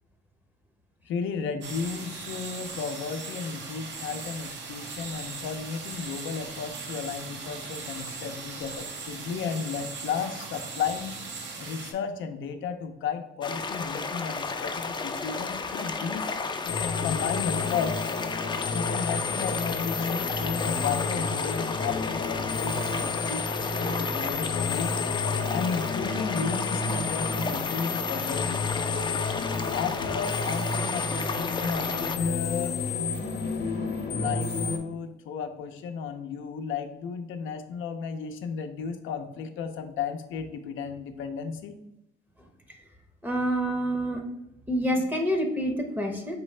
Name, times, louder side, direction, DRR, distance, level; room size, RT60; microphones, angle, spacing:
voice 1, 1.1-11.1 11.6-16.3 17.0-18.0 18.7-24.9 25.5-28.6 29.7-32.7 34.1-41.7, left 6 dB, 80° left, 7 dB, 0.6 m, -34 dB
sound 1, 1.6-11.9, right 4 dB, 65° right, 0.8 m, -39 dB
sound 2, 13.4-32.2, left 4 dB, 25° left, 0.4 m, -33 dB
sound 3, 16.6-34.8, left 4 dB, 55° left, 0.9 m, -31 dB
voice 2, 43.2-44.2 44.7-46.4, equal, 10° right, 3 dB, 0.7 m, -27 dB
4.5 x 3.2 x 3.2 m, 0.87 s
cardioid pair, 90°, 20 cm